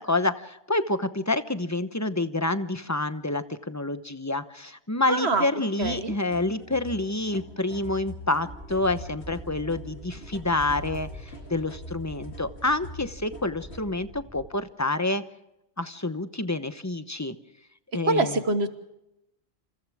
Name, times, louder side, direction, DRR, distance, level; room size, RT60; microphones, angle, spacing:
voice 1, 0.0-11.1 11.5-15.2 15.8-17.4 17.9-18.4, left 2 dB, 15° left, 11 dB, 0.9 m, -28 dB
voice 2, 5.1-5.5 5.8-6.1 18.1-18.7, right 2 dB, 75° right, 9 dB, 1.7 m, -25 dB
sound 1, 5.8-13.9, left 1 dB, 85° left, 2.5 m, -44 dB
sound 2, 5.9-8.7 9.3-9.9 10.6-11.6, equal, 60° left, 7.9 m, -49 dB
sound 3, 8.5-14.5, right 2 dB, 5° right, 4.8 m, -45 dB
28.0 x 28.0 x 3.6 m, 0.87 s
omnidirectional pair, 1.1 m